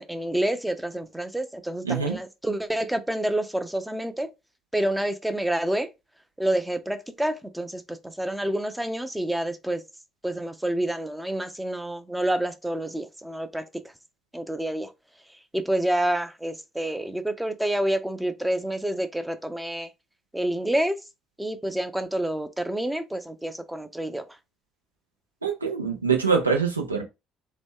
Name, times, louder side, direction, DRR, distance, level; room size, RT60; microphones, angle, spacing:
voice 1, 0.0-4.3 4.7-5.9 6.4-9.8 10.2-13.6 14.3-14.9 15.5-19.9 20.3-21.0 21.4-24.2, right 1 dB, 5° right, 0.5 m, -28 dB
voice 2, 1.8-2.2 25.4-27.0, right 5 dB, 85° right, 0.5 m, -24 dB
2.9 x 2.2 x 3.6 m
figure-of-eight pair, 50°, 0 cm